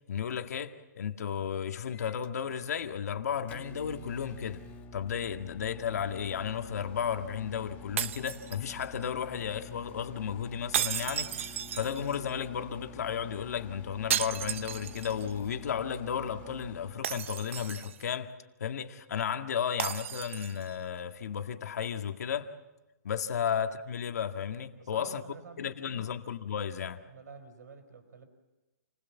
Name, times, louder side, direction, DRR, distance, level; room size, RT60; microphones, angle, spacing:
voice 1, 0.1-4.6 4.9-18.3 18.6-22.5 23.0-25.2 25.6-27.0, left 8 dB, 70° left, 1.9 m, -34 dB
Microwave oven, 1.9-17.0, left 3 dB, 15° left, 1.6 m, -48 dB
sound 1, 8.0-9.0 10.7-12.3 14.1-15.3 15.6-15.7 17.0-18.1 19.8-20.7, right 10 dB, 50° right, 0.8 m, -34 dB
voice 2, 24.8-26.1 27.1-28.3, right 4 dB, 85° right, 4.7 m, -50 dB
29.0 x 20.5 x 7.4 m
hypercardioid pair, 165°, 9 cm